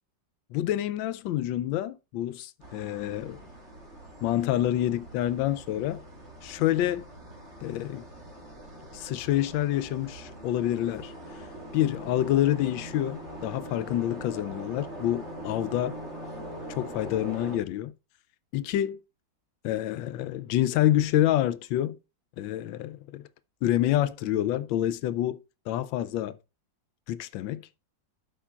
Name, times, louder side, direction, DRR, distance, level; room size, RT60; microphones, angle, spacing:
voice 1, 0.5-3.4 4.2-6.0 6.4-7.0 7.6-8.0 8.9-11.1 11.7-16.0 16.7-17.9 18.5-19.0 19.6-22.0 22.4-23.2 23.6-25.4 25.7-26.4 27.1-27.6, left 13 dB, 85° left, 1.3 m, -27 dB
sound 1, 2.6-17.6, right 1 dB, 35° right, 2.4 m, -42 dB
11.5 x 5.6 x 2.4 m
omnidirectional pair, 2.0 m